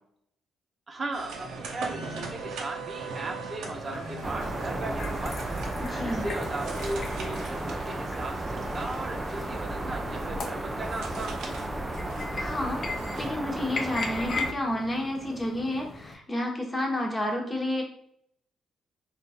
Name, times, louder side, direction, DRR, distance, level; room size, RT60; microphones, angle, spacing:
voice 1, 0.9-5.7 6.0-11.7, right 2 dB, 35° right, 3 dB, 0.8 m, -37 dB
sound 1, 1.1-13.3, right 4 dB, 80° right, 0.7 m, -40 dB
sound 2, 3.6-16.1, left 4 dB, 50° left, 0.7 m, -40 dB
sound 3, 4.2-14.5, right 1 dB, 15° right, 0.4 m, -34 dB
voice 2, 5.8-6.3 12.3-17.8, left 1 dB, 20° left, 1 dB, 1.1 m, -30 dB
3.6 x 2.5 x 4.2 m, 0.68 s
cardioid pair, 90°, 0 cm